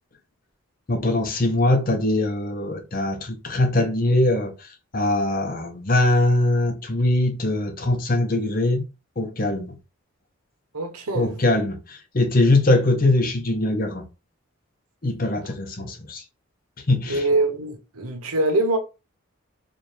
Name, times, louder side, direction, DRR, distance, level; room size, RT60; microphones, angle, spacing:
voice 1, 0.9-4.5 4.9-8.9 9.2-9.8 11.1-14.0 15.0-16.2 16.9-17.2, left 2 dB, 40° left, 0.7 m, -22 dB
voice 2, 10.7-11.4 15.8-15.9 17.1-18.8, right 2 dB, 90° right, 1.0 m, -24 dB
4.3 x 2.5 x 3.3 m
head